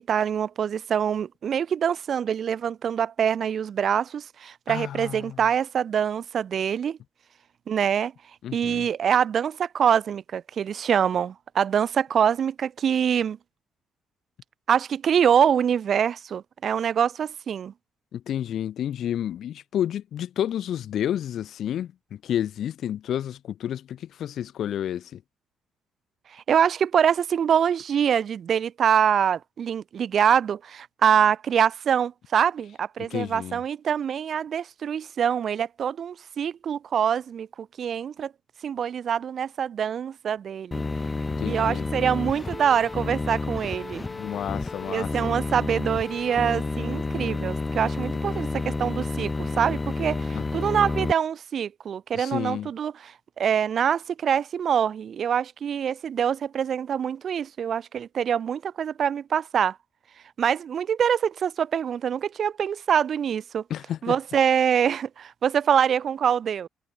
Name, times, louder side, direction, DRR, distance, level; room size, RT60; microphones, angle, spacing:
voice 1, 0.0-7.0 7.7-8.1 8.5-13.4 14.7-17.7 26.3-38.3 38.6-40.8 41.4-44.1 44.9-59.8 60.4-63.6 64.0-66.7, right 8 dB, 55° right, 3.3 m, -25 dB
voice 2, 4.7-5.4 8.4-8.9 18.1-25.2 33.0-33.6 41.4-41.9 44.1-45.3 50.3-50.7 52.1-52.7 63.7-64.2, left 10 dB, 70° left, 1.9 m, -30 dB
sound 1, 40.7-51.1, left 3 dB, 25° left, 3.4 m, -30 dB
cardioid pair, 90°, 0 cm